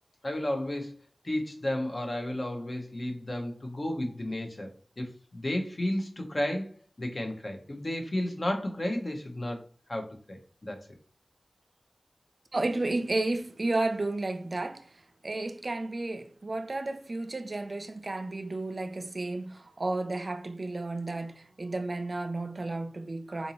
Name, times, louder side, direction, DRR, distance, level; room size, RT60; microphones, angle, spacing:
voice 1, 0.2-0.9 1.2-4.7 5.0-10.8, left 1 dB, 45° left, 0.8 m, -33 dB
voice 2, 12.5-23.5, right 2 dB, 50° right, 0.3 m, -32 dB
3.9 x 2.6 x 2.8 m
wide cardioid pair, 85°, 0 cm